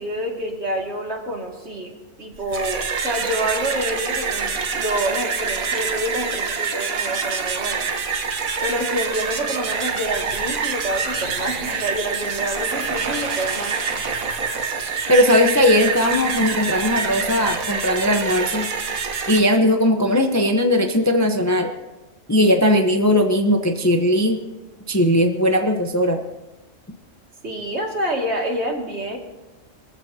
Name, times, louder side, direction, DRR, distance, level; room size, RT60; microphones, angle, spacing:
voice 1, 0.0-1.9 2.2-7.9 8.6-13.8 27.4-29.2, right 1 dB, 55° right, 0 dB, 2.6 m, -27 dB
sound 1, 2.4-19.4, right 5 dB, 85° right, 1.6 m, -26 dB
voice 2, 15.1-18.7 19.3-21.7 22.3-24.4 24.9-26.2, left 1 dB, 15° left, 4 dB, 0.8 m, -18 dB
23.5 x 14.5 x 2.8 m, 1.1 s
omnidirectional pair, 1.4 m